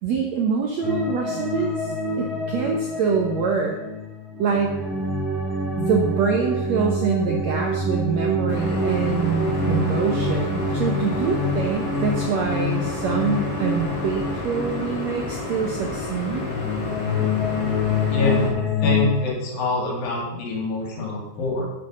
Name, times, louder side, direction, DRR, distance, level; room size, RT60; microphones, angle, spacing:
voice 1, 0.0-3.8 4.4-4.8 5.8-16.4, right 5 dB, 70° right, 1 dB, 1.7 m, -25 dB
sound 1, 0.8-16.1 16.3-19.3, left 2 dB, ahead, 0.4 m, -26 dB
sound 2, 8.5-18.5, left 2 dB, 35° left, 2.6 m, -31 dB
voice 2, 18.1-21.7, left 1 dB, 65° left, 1 dB, 4.0 m, -25 dB
10.0 x 7.7 x 6.3 m, 0.97 s
omnidirectional pair, 4.5 m